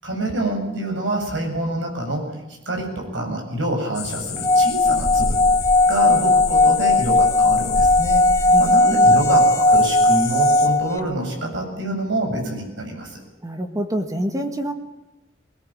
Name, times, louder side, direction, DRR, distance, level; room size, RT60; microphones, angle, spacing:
voice 1, 0.0-2.2 2.7-5.4 5.9-13.2, right 1 dB, 70° right, 2 dB, 7.4 m, -26 dB
Japanese Cicadas, 3.9-10.7, left 4 dB, 35° left, 3.4 m, -29 dB
Singing / Glass, 4.4-11.0, left 2 dB, 15° left, 1.0 m, -17 dB
voice 2, 8.5-9.2 13.4-14.7, equal, 20° right, 6 dB, 1.8 m, -27 dB
20.0 x 20.0 x 8.8 m, 0.97 s
head